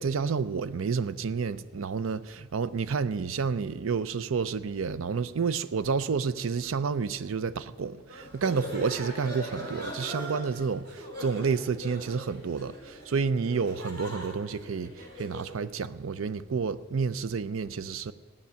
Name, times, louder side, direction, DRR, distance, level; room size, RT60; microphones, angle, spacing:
voice 1, 0.0-18.1, right 5 dB, 90° right, 0.5 m, -30 dB
sound 1, 8.1-15.6, equal, 50° right, 3.3 m, -40 dB
14.5 x 9.7 x 6.9 m
head